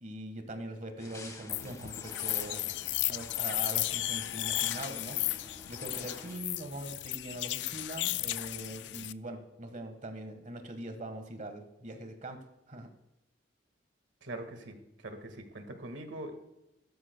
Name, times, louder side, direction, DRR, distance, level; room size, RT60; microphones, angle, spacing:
voice 1, 0.0-2.7 3.1-5.2 5.7-12.9, right 1 dB, 40° right, 7 dB, 1.4 m, -42 dB
sound 1, 1.0-6.4, left 2 dB, 20° left, 1.4 m, -49 dB
sound 2, 1.5-9.1, left 16 dB, 65° left, 0.3 m, -34 dB
voice 2, 14.2-16.3, right 1 dB, 80° right, 6 dB, 1.7 m, -43 dB
15.5 x 12.5 x 2.2 m, 0.91 s
head